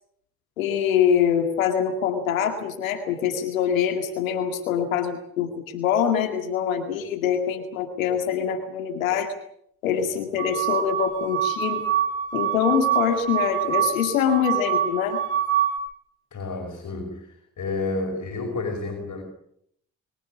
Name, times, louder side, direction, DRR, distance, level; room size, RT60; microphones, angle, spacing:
voice 1, 0.6-9.3 9.8-11.8 12.3-15.2, left 8 dB, 90° left, 6 dB, 2.2 m, -24 dB
sound 1, 10.4-15.8, right 10 dB, 75° right, 7.8 m, -25 dB
voice 2, 16.3-19.2, left 3 dB, 45° left, 2 dB, 5.6 m, -30 dB
25.0 x 14.5 x 9.7 m, 0.70 s
hypercardioid pair, 50°, 39 cm